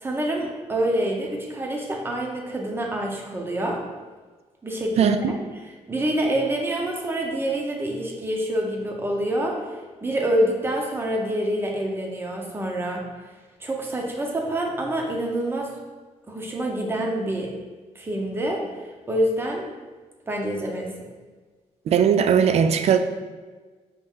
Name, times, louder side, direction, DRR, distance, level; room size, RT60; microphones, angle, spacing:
voice 1, 0.0-3.8 4.6-5.4 5.9-13.1 13.6-15.7 16.3-17.5 17.9-18.6 19.1-19.6 20.3-21.1, right 1 dB, 20° right, 1 dB, 0.7 m, -26 dB
voice 2, 5.0-5.3 21.9-23.0, right 7 dB, 55° right, 9 dB, 0.4 m, -19 dB
5.7 x 2.6 x 3.6 m, 1.4 s
cardioid pair, 125°, 13 cm